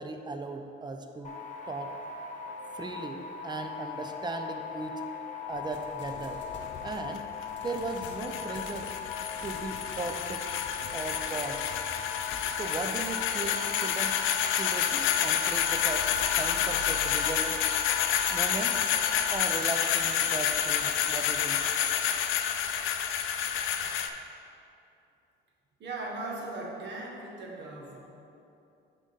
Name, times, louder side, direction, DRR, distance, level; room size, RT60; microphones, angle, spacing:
voice 1, 0.0-1.3 1.7-1.9 2.7-5.0 5.5-6.4 6.8-7.3 7.6-8.9 9.4-10.4 10.9-11.6 12.5-14.2 14.6-16.1 16.4-17.5 18.3-18.8 19.3-21.6, right 3 dB, 20° right, 6 dB, 0.5 m, -37 dB
sound 1, 1.2-19.6, left 7 dB, 40° left, 0.8 m, -39 dB
sound 2, 5.5-15.0 15.6-23.6, left 4 dB, 65° left, 0.8 m, -50 dB
sound 3, 6.6-24.1, left 9 dB, 90° left, 0.4 m, -29 dB
voice 2, 25.8-28.0, right 2 dB, 65° right, -1 dB, 1.2 m, -38 dB
6.3 x 3.7 x 5.3 m, 2.7 s
cardioid pair, 90°, 20 cm